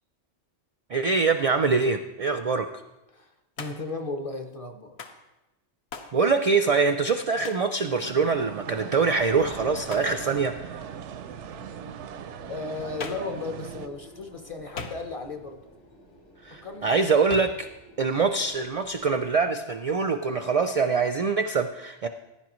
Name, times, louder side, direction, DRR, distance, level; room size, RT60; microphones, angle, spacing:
voice 1, 0.9-2.7 6.1-10.9 16.4-17.7 18.0-22.1, right 4 dB, 55° right, 8 dB, 0.4 m, -24 dB
voice 2, 3.1-5.0 12.5-15.6 16.5-17.1, left 3 dB, 35° left, 5 dB, 0.8 m, -35 dB
Hands, 3.6-4.0 5.0-5.2 5.9-6.2 7.4-7.7 9.9-10.2 13.0-13.4 14.8-15.3 17.3-17.7, left 4 dB, 70° left, 1.1 m, -39 dB
sound 1, 8.0-13.9, right 9 dB, 85° right, 0.9 m, -39 dB
sound 2, 9.1-19.5, equal, 90° left, 2.3 m, -50 dB
15.0 x 10.5 x 3.0 m, 1.0 s
omnidirectional pair, 1.2 m